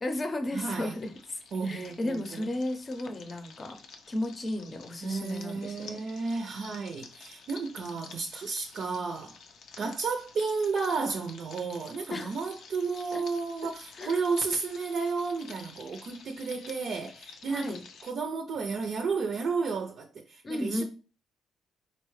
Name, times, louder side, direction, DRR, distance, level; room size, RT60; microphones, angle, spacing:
voice 1, 0.0-3.8 4.1-6.0 12.1-12.3 13.1-13.2 14.0-14.2 17.5-17.8 20.4-20.8, left 1 dB, 30° left, 0.7 m, -34 dB
voice 2, 0.5-0.9 1.5-2.4 5.0-9.4 9.8-17.7 18.0-20.8, right 4 dB, 60° right, 0.5 m, -32 dB
sound 1, 0.6-18.1, left 5 dB, 70° left, 0.5 m, -51 dB
4.0 x 2.2 x 3.1 m
cardioid pair, 90°, 0 cm